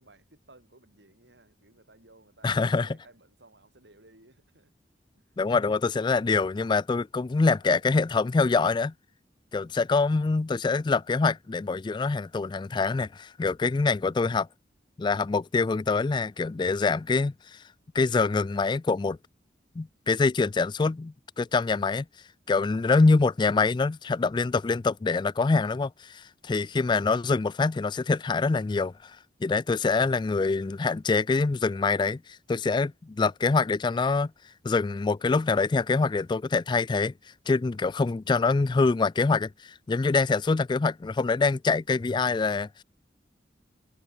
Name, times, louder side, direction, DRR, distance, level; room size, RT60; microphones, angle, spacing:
voice 1, 0.0-4.7 5.1-5.4 9.5-9.9 26.5-26.8 29.7-30.3, right 2 dB, 80° right, 7.8 m, -58 dB
voice 2, 2.4-2.9 5.4-8.9 9.5-14.5 15.0-17.6 17.9-19.2 19.8-22.1 22.5-34.3 34.6-37.1 37.5-42.8, left 4 dB, 25° left, 0.3 m, -25 dB
head